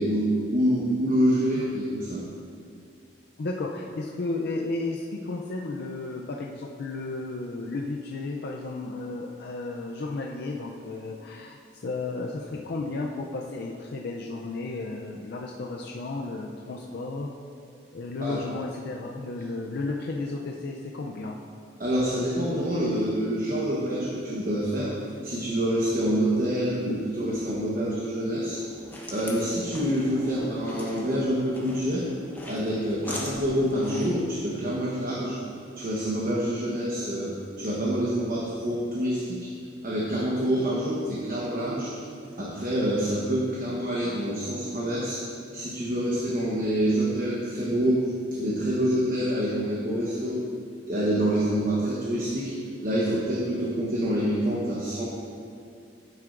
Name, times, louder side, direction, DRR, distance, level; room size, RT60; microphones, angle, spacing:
voice 1, 0.0-2.2 18.2-18.4 21.8-24.9 25.2-28.6 29.1-32.0 32.5-35.4 35.7-37.3 37.6-39.5 39.8-42.0 42.4-45.2 45.5-48.0 48.4-50.4 50.9-52.5 52.8-55.0, equal, 45° right, -5 dB, 1.0 m, -26 dB
voice 2, 3.4-17.3 17.9-21.4, left 3 dB, 60° left, 0 dB, 0.5 m, -33 dB
sound 1, 28.5-34.2, left 1 dB, 10° left, 0.9 m, -41 dB
9.4 x 7.7 x 2.5 m, 2.4 s
head